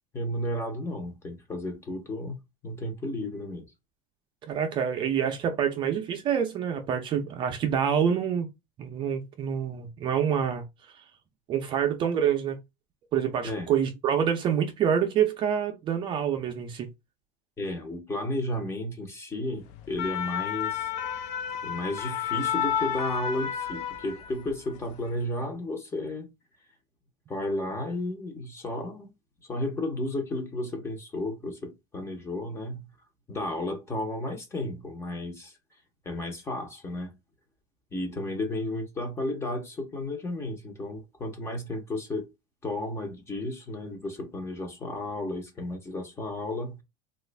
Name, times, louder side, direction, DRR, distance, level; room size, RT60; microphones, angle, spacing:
voice 1, 0.1-2.4 2.6-3.7 13.4-13.7 17.6-20.9 21.6-26.3 27.3-29.1 29.5-32.9 33.3-35.5 36.0-37.1 37.9-42.3 42.6-46.8, left 1 dB, 15° left, 0.8 m, -33 dB
voice 2, 4.5-8.5 8.8-11.0 11.5-12.6 13.1-16.9, right 8 dB, 30° right, 0.5 m, -27 dB
sound 1, 19.7-24.5 24.9-25.1, left 9 dB, 60° left, 0.5 m, -31 dB
3.1 x 2.4 x 3.2 m
supercardioid pair, 155°, 16 cm